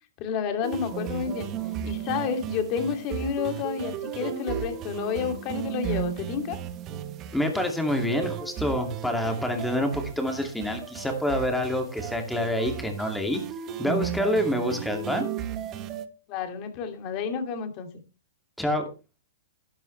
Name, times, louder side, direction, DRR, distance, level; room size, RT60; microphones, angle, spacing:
voice 1, 0.2-1.5 1.8-6.6 16.3-17.9, left 7 dB, 35° left, 6 dB, 2.6 m, -30 dB
sound 1, 0.6-16.1, right 9 dB, 25° right, 1.3 m, -35 dB
voice 2, 7.3-13.4 13.8-15.3 18.6-18.9, left 1 dB, 5° left, 3 dB, 2.5 m, -27 dB
12.0 x 10.5 x 3.3 m, 0.31 s
hypercardioid pair, 150°, 0 cm